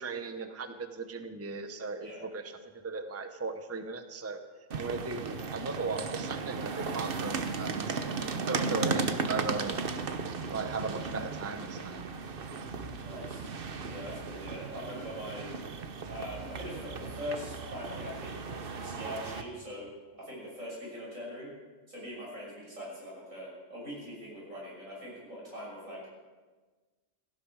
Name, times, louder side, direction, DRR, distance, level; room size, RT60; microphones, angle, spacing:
voice 1, 0.0-2.5 2.8-4.4 4.7-8.2 8.4-9.8 10.5-12.1, right 3 dB, 15° right, 8 dB, 0.8 m, -37 dB
sound 1, 4.7-19.4, right 4 dB, 50° right, 1.1 m, -36 dB
voice 2, 13.0-13.5 13.8-15.5 16.1-21.5 21.9-26.0, equal, 90° right, -5 dB, 7.1 m, -42 dB
17.0 x 15.5 x 4.8 m, 1.3 s
omnidirectional pair, 1.3 m